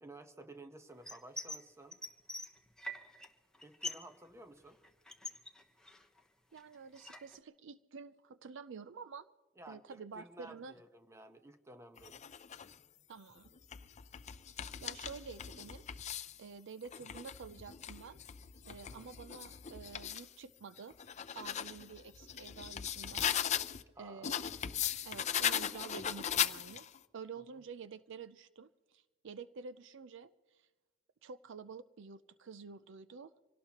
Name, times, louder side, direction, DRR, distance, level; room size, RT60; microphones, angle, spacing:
voice 1, 0.0-2.0 3.6-4.8 9.6-12.2 18.7-19.1 23.9-24.3, right 1 dB, 15° right, 8 dB, 1.0 m, -54 dB
sound 1, 1.1-1.6 1.9-3.3 3.5-4.1 4.4-6.2 6.6-7.4, left 1 dB, 5° left, 1.0 m, -44 dB
voice 2, 6.5-9.3 9.7-10.8 13.1-13.5 14.8-15.8 16.4-18.2 18.6-20.9 21.3-23.7 24.0-24.4 25.0-26.9 27.1-30.7 31.2-33.3, right 5 dB, 65° right, 13 dB, 0.5 m, -49 dB
sound 2, 12.0-12.7 13.4-16.4 16.8-20.3 20.8-23.8 24.2-27.0, left 9 dB, 35° left, 0.5 m, -38 dB
25.5 x 17.5 x 3.0 m, 1.2 s
head